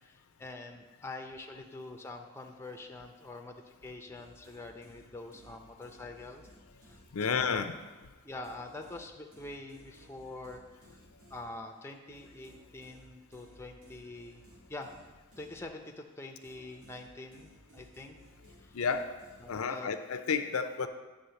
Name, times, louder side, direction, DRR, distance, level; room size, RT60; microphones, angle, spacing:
voice 1, 0.0-6.4 6.8-7.0 7.3-7.6 8.2-10.6 11.3-14.4 14.7-15.0 15.4-18.1 18.6-18.7 19.4-19.9 20.8-20.9, left 2 dB, 10° left, 3 dB, 0.5 m, -45 dB
sound 1, 4.1-8.1 8.4-16.1 16.4-19.9, equal, 70° right, 1.7 m, -59 dB
voice 2, 7.1-7.7 18.7-19.2 19.5-20.9, left 5 dB, 85° left, 9 dB, 0.5 m, -31 dB
9.4 x 3.5 x 6.9 m, 1.2 s
head